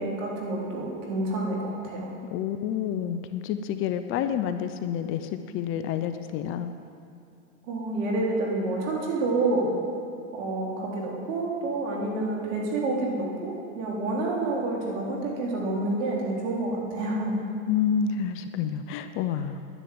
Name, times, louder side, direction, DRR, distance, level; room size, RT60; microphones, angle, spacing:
voice 1, 0.0-2.1 7.7-9.7 10.3-17.3, right 2 dB, 65° right, -3 dB, 3.8 m, -28 dB
voice 2, 2.3-6.7 17.7-19.6, left 8 dB, 30° left, 9 dB, 0.5 m, -29 dB
11.0 x 10.0 x 7.9 m, 2.5 s
hypercardioid pair, 125°, 41 cm